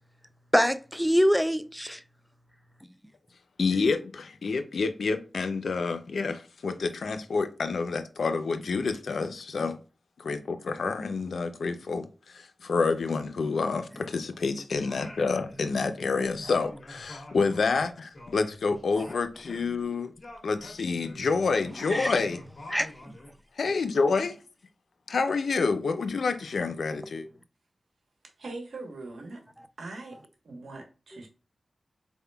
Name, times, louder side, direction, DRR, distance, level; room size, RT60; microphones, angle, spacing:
voice 1, 0.5-2.0 21.9-22.1 22.7-22.9 27.0-27.3, equal, ahead, 0.4 m, -24 dB
voice 2, 3.6-9.8 10.2-20.1 20.4-22.4 23.6-24.4 25.1-27.3, left 4 dB, 85° left, 0.5 m, -28 dB
Singing, 14.8-16.0 16.2-19.9 20.2-23.4, left 1 dB, 50° left, 1.7 m, -47 dB
voice 3, 28.4-29.4 29.8-30.2 30.4-31.3, right 2 dB, 90° right, 1.2 m, -41 dB
4.3 x 3.5 x 2.3 m
cardioid pair, 60°, 0 cm